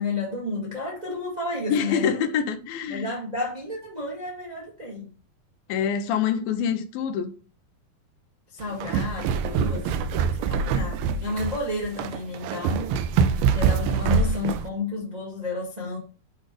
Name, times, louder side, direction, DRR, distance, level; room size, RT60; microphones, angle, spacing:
voice 1, 0.0-2.1 2.9-5.1 8.5-12.9 13.5-16.0, left 2 dB, 45° right, 0.5 m, -31 dB
voice 2, 1.7-3.1 5.7-7.3, left 7 dB, 85° left, 2.5 m, -25 dB
sound 1, 8.6-14.7, right 6 dB, 80° right, 2.3 m, -24 dB
8.2 x 3.3 x 5.0 m
omnidirectional pair, 4.3 m